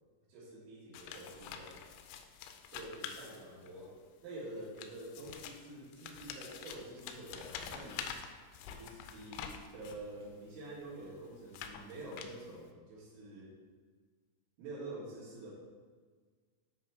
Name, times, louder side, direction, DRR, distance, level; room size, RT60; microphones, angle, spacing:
voice 1, 0.3-2.0 2.7-3.9 4.2-8.0 8.7-13.5 14.6-15.5, right 1 dB, 80° right, -7 dB, 4.4 m, -47 dB
sound 1, 0.9-3.9 4.6-10.1 10.7-12.7, left 8 dB, 85° left, 3.0 m, -47 dB
9.9 x 3.4 x 4.3 m, 1.5 s
omnidirectional pair, 5.8 m